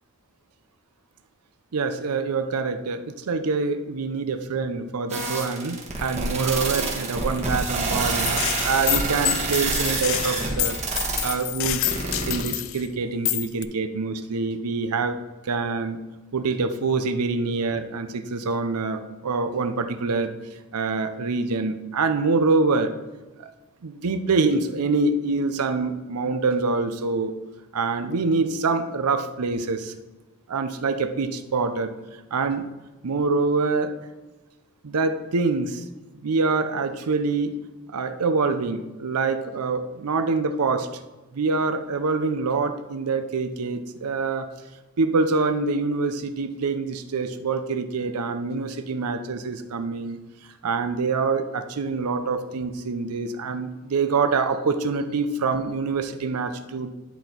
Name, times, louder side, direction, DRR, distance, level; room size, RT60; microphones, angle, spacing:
voice 1, 1.7-11.9 12.3-16.0 16.3-20.4 20.7-23.0 23.4-23.5 23.8-27.3 27.7-29.9 30.5-32.0 32.3-32.6 33.0-34.0 34.8-35.8 36.2-37.6 37.9-40.9 41.3-44.5 45.0-50.2 50.6-56.9, right 4 dB, 90° right, 9 dB, 0.6 m, -25 dB
sound 1, 5.1-12.4, right 3 dB, 30° right, 1.3 m, -27 dB
Gunshot gunfire, 8.2-12.8 13.2-13.6, left 16 dB, 60° left, 0.3 m, -28 dB
10.5 x 4.3 x 4.0 m, 1.1 s
head